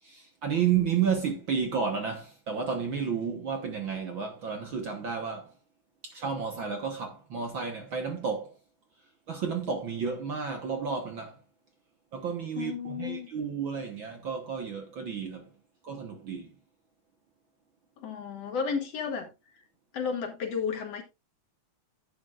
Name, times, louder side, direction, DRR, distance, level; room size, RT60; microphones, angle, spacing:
voice 1, 0.0-5.5 6.0-8.6 9.3-11.4 12.1-15.5 15.8-16.5, right 6 dB, 55° right, 1.5 m, -31 dB
voice 2, 12.6-13.3 18.0-19.3 19.9-21.0, left 6 dB, 60° left, 2.8 m, -32 dB
12.0 x 9.0 x 2.5 m
omnidirectional pair, 3.3 m